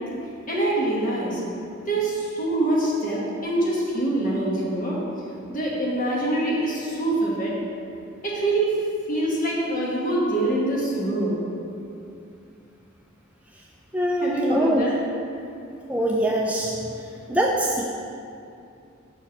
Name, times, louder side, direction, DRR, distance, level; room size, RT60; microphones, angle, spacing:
voice 1, 0.5-1.4 1.9-5.0 5.5-7.5 8.2-8.7 9.1-11.4 14.2-14.9, right 1 dB, 40° left, -4 dB, 1.4 m, -24 dB
voice 2, 13.9-14.9 15.9-16.7 17.3-17.8, right 1 dB, 5° right, -2 dB, 0.3 m, -23 dB
6.0 x 4.5 x 5.8 m, 2.5 s
head